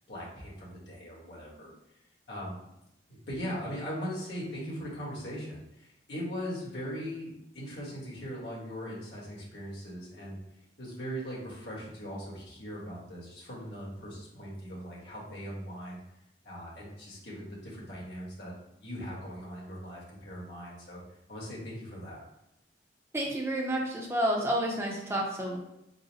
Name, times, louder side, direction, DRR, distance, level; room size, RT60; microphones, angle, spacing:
voice 1, 0.1-1.7 2.3-2.6 3.1-10.4 10.8-16.0 16.4-18.5 18.8-21.0 21.3-22.2, equal, 70° left, -5 dB, 1.4 m, -40 dB
voice 2, 23.1-25.6, right 1 dB, 15° right, -2 dB, 0.6 m, -30 dB
4.0 x 2.1 x 4.0 m, 0.84 s
head